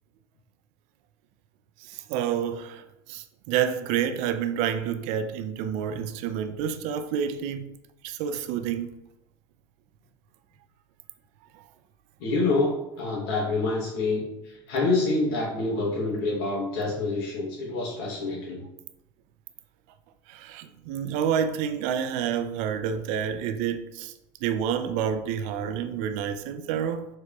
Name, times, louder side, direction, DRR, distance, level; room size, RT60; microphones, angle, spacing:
voice 1, 1.8-7.7 8.0-8.9 11.5-11.6 20.3-24.1 24.4-27.1, right 8 dB, 65° right, 0.4 m, -29 dB
voice 2, 12.2-18.6, left 3 dB, 80° left, 1.0 m, -27 dB
4.7 x 2.9 x 2.3 m
supercardioid pair, 95°, 12 cm